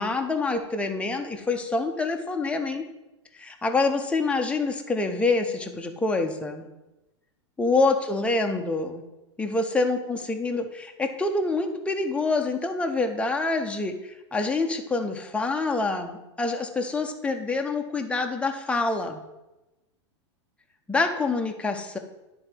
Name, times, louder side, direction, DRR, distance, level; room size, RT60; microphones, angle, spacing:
voice 1, 0.0-2.8 3.4-6.7 7.6-9.0 9.4-19.2 20.9-22.0, left 3 dB, 5° left, 3 dB, 0.8 m, -26 dB
9.9 x 3.9 x 4.5 m, 0.99 s
hypercardioid pair, 115°, 16 cm